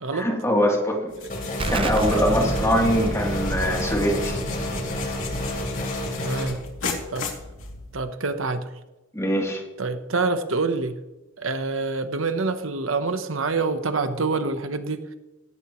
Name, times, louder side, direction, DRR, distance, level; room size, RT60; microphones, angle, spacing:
voice 1, 0.1-1.1 1.7-4.3 9.1-9.6, equal, 15° left, -1 dB, 3.2 m, -23 dB
sound 1, 1.1-8.1, left 4 dB, 80° left, 2.9 m, -36 dB
sound 2, 1.3-6.4, left 1 dB, 45° left, 4.2 m, -31 dB
Explosion, 1.6-7.0, right 2 dB, 25° right, 0.5 m, -30 dB
voice 2, 2.2-2.6 6.2-6.6 7.1-7.3 7.9-8.7 9.8-11.0 11.4-15.2, right 3 dB, 75° right, 9 dB, 1.1 m, -26 dB
17.0 x 17.0 x 3.2 m, 1.1 s
head